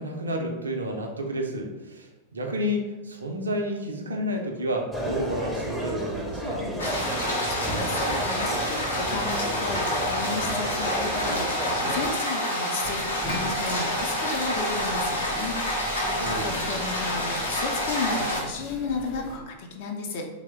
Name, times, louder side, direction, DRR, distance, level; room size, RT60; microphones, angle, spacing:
voice 1, 0.0-6.7 16.2-16.6, equal, 75° right, 2 dB, 0.5 m, -30 dB
sound 1, 4.9-12.1, equal, ahead, 0.5 m, -32 dB
sound 2, 6.8-18.4, equal, 75° left, 0.7 m, -28 dB
voice 2, 7.4-13.0 13.3-15.6 16.1-20.3, left 4 dB, 50° left, 2 dB, 0.4 m, -33 dB
sound 3, 12.8-19.4, left 1 dB, 30° left, 0.8 m, -39 dB
2.9 x 2.0 x 3.4 m, 1.1 s
figure-of-eight pair, 90°, 0 cm